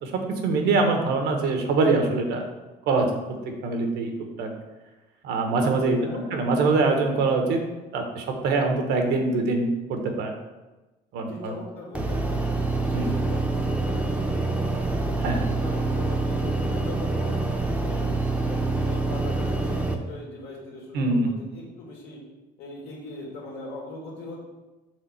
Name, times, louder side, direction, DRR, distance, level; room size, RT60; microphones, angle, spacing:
voice 1, 0.0-2.4 2.9-3.4 3.6-4.1 4.4-4.5 5.2-7.6 7.9-10.3 11.1-11.6 12.9-13.1 15.2-15.5 20.9-21.3, right 3 dB, 85° right, 3 dB, 1.1 m, -24 dB
voice 2, 6.0-6.3 11.2-12.3 12.6-15.1 15.6-18.1 18.4-22.2 22.6-24.4, left 2 dB, 80° left, -3 dB, 2.0 m, -40 dB
sound 1, 11.9-19.9, right 2 dB, 5° right, 0.7 m, -26 dB
4.9 x 3.7 x 5.6 m, 1.1 s
cardioid pair, 110°, 17 cm